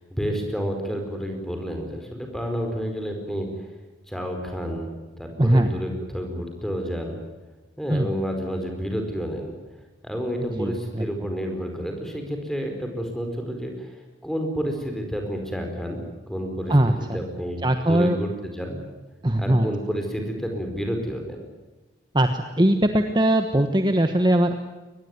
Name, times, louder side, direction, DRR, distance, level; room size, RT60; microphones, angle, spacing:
voice 1, 0.1-3.5 4.1-4.9 5.2-7.2 7.8-9.5 10.0-13.9 14.2-16.7 17.1-18.8 19.4-21.4, equal, ahead, 3 dB, 4.7 m, -30 dB
voice 2, 5.4-5.7 7.9-8.1 10.4-11.1 16.7-17.2 17.6-18.2 19.2-19.7 22.1-24.6, right 1 dB, 25° right, 6 dB, 1.2 m, -20 dB
23.5 x 20.0 x 9.5 m, 1.2 s
head